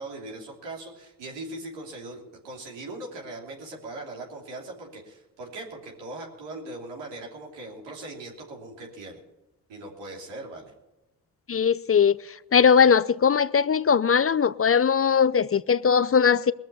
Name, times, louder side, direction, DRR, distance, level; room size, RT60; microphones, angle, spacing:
voice 1, 0.0-9.2 9.7-10.7, right 2 dB, 85° right, 3.2 m, -40 dB
voice 2, 11.5-12.2 12.5-16.5, left 6 dB, 35° left, 0.6 m, -20 dB
20.5 x 7.3 x 6.9 m
hypercardioid pair, 40°, 42 cm